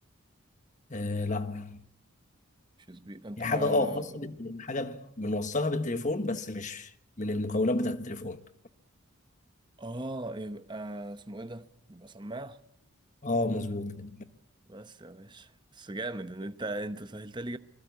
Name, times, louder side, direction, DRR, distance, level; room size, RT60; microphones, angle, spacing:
voice 1, 0.9-1.8 3.4-6.9 7.2-8.4 13.2-14.3, left 2 dB, 35° left, 1.2 m, -30 dB
voice 2, 2.9-4.1 9.8-12.6 14.7-17.6, right 2 dB, 20° right, 0.9 m, -39 dB
26.5 x 20.5 x 8.3 m
head